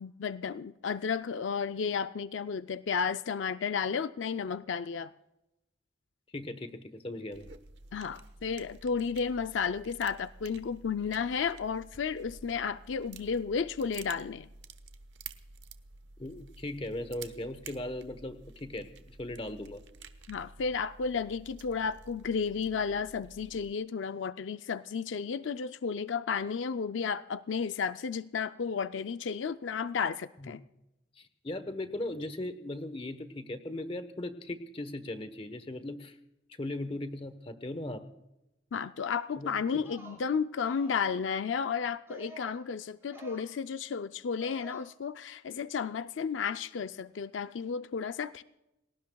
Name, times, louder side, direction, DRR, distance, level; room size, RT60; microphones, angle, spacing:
voice 1, 0.0-5.1 7.9-14.5 20.3-30.6 38.7-48.4, left 6 dB, 80° left, 11 dB, 0.5 m, -33 dB
voice 2, 6.3-7.5 16.2-19.8 30.4-30.5 31.2-36.2 36.6-38.0 39.4-39.8, left 1 dB, 30° left, 10 dB, 1.0 m, -38 dB
sound 1, 7.3-23.7, right 4 dB, 70° right, 1.0 m, -51 dB
sound 2, 39.7-40.2 40.6-41.3 42.1-42.6 43.0-43.5 44.4-44.8, right 1 dB, 15° right, 5.0 m, -50 dB
30.0 x 18.5 x 2.3 m, 0.93 s
head